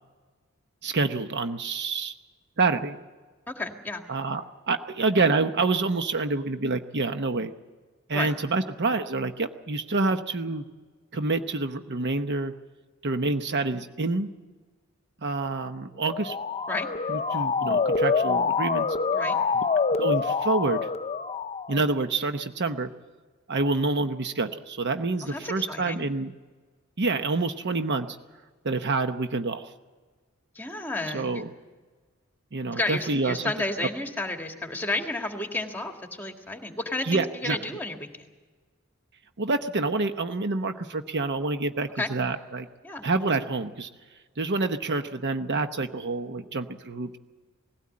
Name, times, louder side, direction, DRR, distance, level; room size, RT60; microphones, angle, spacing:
voice 1, 0.8-2.1 2.6-3.0 4.1-7.5 8.1-10.6 11.1-12.5 13.0-14.3 15.2-16.4 17.1-18.9 20.0-20.9 21.7-22.9 23.5-26.3 27.0-28.2 28.6-29.7 31.1-31.5 32.5-33.5 37.0-37.6 39.4-42.7 43.0-43.9 44.4-47.2, right 3 dB, 50° right, 8 dB, 0.9 m, -27 dB
voice 2, 3.5-4.0 8.1-8.3 16.7-16.9 19.1-19.4 25.2-26.0 30.6-31.3 32.7-38.1 42.0-42.1 42.8-43.0, left 2 dB, 10° left, 4 dB, 1.8 m, -31 dB
Motor vehicle (road) / Siren, 16.0-21.9, left 5 dB, 30° left, 0.5 m, -26 dB
19.0 x 16.5 x 8.6 m, 1.4 s
head